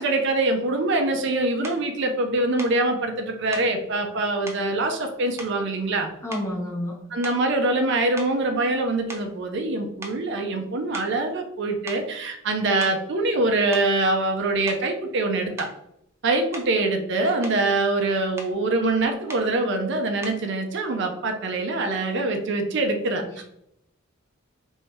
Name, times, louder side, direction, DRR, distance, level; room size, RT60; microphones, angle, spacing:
voice 1, 0.0-6.1 7.1-15.7 16.2-23.2, right 2 dB, 60° right, 4 dB, 0.6 m, -24 dB
sound 1, 1.6-1.9 2.6-2.8 3.5-3.8 4.5-4.7 5.4-6.0 6.3-6.7 7.2-7.6 8.2-9.7 10.0-10.2 10.9-11.2 11.9-12.1 12.6-13.1 13.7-13.9 14.7-14.9 15.6-15.8 16.5-16.8 17.2-17.6 18.4-18.6 19.3-19.5 20.2-20.5, right 1 dB, 15° right, 0.5 m, -40 dB
voice 2, 6.2-6.9 23.2-23.5, left 1 dB, 15° left, -3 dB, 1.0 m, -30 dB
3.3 x 2.7 x 4.4 m, 0.77 s
head